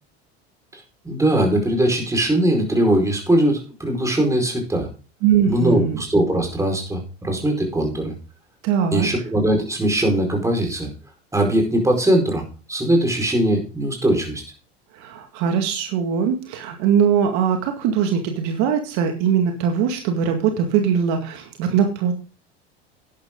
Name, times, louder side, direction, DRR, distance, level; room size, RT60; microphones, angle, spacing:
voice 1, 0.7-4.9 5.5-8.1 8.9-10.9 11.3-14.4, right 1 dB, 10° right, 2 dB, 4.8 m, -20 dB
voice 2, 5.2-6.0 8.6-9.1 14.9-22.1, right 7 dB, 60° right, 4 dB, 2.1 m, -21 dB
11.5 x 10.5 x 3.8 m, 0.35 s
hypercardioid pair, 100°, 32 cm